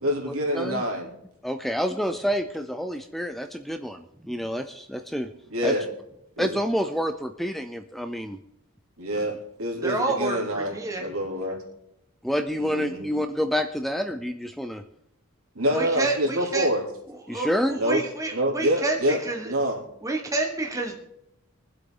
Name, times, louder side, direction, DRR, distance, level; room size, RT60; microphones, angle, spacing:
voice 1, 0.0-1.2 5.5-5.9 6.4-6.6 9.0-11.6 12.5-13.1 15.5-16.8 17.8-18.0 18.3-19.2 19.4-19.8, equal, 70° right, 0 dB, 3.1 m, -26 dB
voice 2, 1.4-5.3 5.6-5.7 6.4-8.4 12.2-14.8 17.3-17.8, equal, ahead, 8 dB, 0.5 m, -28 dB
voice 3, 9.8-11.1 15.7-16.7 17.1-19.5 20.0-21.0, right 2 dB, 15° right, 2 dB, 1.2 m, -29 dB
23.0 x 7.9 x 3.9 m, 0.81 s
head